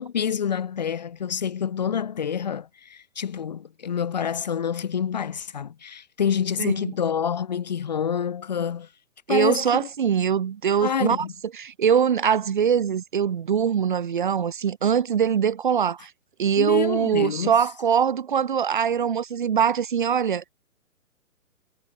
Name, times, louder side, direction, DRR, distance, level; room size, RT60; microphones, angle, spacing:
voice 1, 0.0-8.9 9.3-9.9 10.8-11.3 16.6-17.5, left 8 dB, 30° left, 1.5 m, -27 dB
voice 2, 6.6-6.9 9.3-11.2 11.6-16.1 16.4-20.5, right 7 dB, 35° right, 1.8 m, -22 dB
hypercardioid pair, 175°, 42 cm